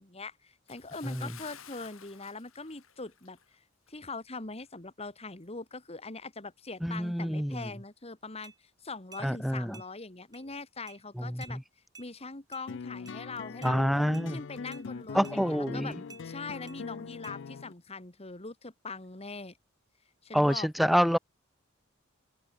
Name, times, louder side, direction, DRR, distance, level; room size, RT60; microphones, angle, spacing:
voice 1, 0.0-3.4 3.9-8.5 8.8-11.6 12.0-13.8 14.3-16.0 16.2-19.6 20.2-21.2, left 3 dB, 30° left, 2.0 m, -42 dB
Bathtub (filling or washing) / Splash splatter, 0.7-3.5 3.9-4.0 4.6-4.7, left 9 dB, 85° left, 3.3 m, -52 dB
voice 2, 6.8-7.7 9.2-9.8 11.2-11.6 13.6-14.4 15.1-16.0 20.3-21.2, equal, ahead, 0.4 m, -27 dB
sound 1, 8.4-8.6 9.1-9.3 9.7-9.9 10.3-10.4 10.9-11.0 11.4-11.6 11.9-12.1 12.5-12.7 13.1-13.2 13.6-13.8 14.1-14.3 14.7-14.9 15.2-15.4 16.1-16.2 16.7-16.8 17.2-17.4, right 4 dB, 20° right, 4.6 m, -51 dB
sound 2, 12.7-17.7, left 5 dB, 60° left, 0.4 m, -42 dB
open air
head